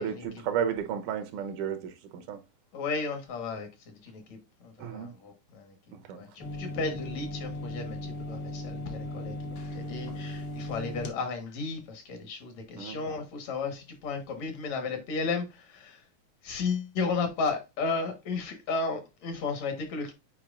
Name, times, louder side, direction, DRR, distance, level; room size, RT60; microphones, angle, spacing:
voice 1, 0.0-2.4 4.8-5.1 5.9-6.2 9.2-9.6 12.8-13.0, right 8 dB, 80° right, 2.3 m, -33 dB
voice 2, 2.7-5.8 6.1-9.4 9.7-16.0 16.4-20.1, left 4 dB, 65° left, 2.4 m, -34 dB
sound 1, 6.4-11.1, left 1 dB, 90° left, 0.9 m, -37 dB
8.5 x 4.7 x 2.4 m
omnidirectional pair, 3.5 m